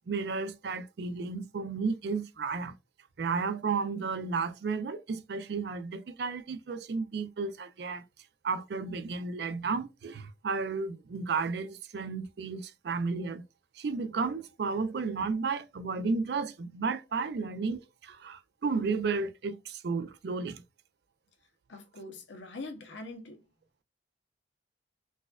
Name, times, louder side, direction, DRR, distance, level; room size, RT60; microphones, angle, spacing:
voice 1, 0.1-2.7 3.2-8.0 8.4-13.4 13.8-20.6, right 4 dB, 60° right, 0.4 m, -33 dB
voice 2, 21.7-23.4, left 2 dB, 75° left, 0.8 m, -43 dB
4.1 x 2.4 x 2.3 m
head